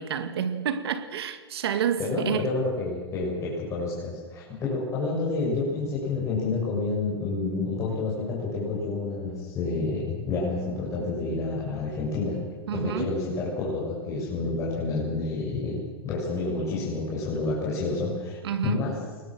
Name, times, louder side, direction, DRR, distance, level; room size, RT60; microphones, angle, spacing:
voice 1, 0.0-2.5 12.7-13.1 18.4-18.8, right 8 dB, 80° right, 2.4 m, -29 dB
voice 2, 2.0-12.4 12.7-18.4 18.6-19.0, left 3 dB, 25° left, 7.0 m, -29 dB
29.0 x 20.5 x 6.4 m
supercardioid pair, 145°, 13 cm